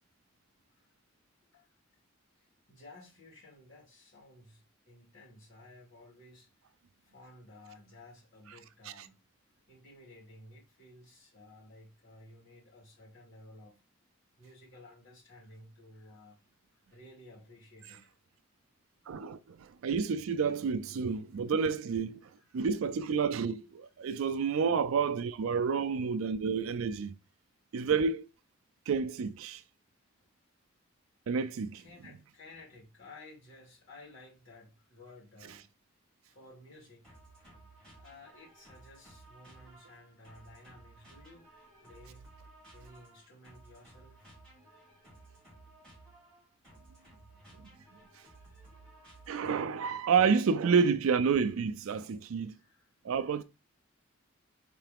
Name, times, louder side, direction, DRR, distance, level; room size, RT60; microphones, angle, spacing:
voice 1, 2.3-6.5 7.0-9.1 9.7-13.8 14.4-16.4 16.7-18.1 22.4-22.5 31.7-35.7 36.3-37.1 38.0-41.5 41.8-42.3 42.7-44.3 48.7-48.8 52.5-52.9 53.2-53.4, left 2 dB, 55° left, 2.4 m, -55 dB
voice 2, 19.1-27.1 27.7-28.3 28.9-29.6 31.3-31.8 47.6-47.7 49.3-52.6 53.0-53.4, right 6 dB, 80° right, 0.4 m, -29 dB
sound 1, 37.0-49.8, right 2 dB, 5° left, 2.7 m, -57 dB
4.6 x 3.3 x 3.4 m
head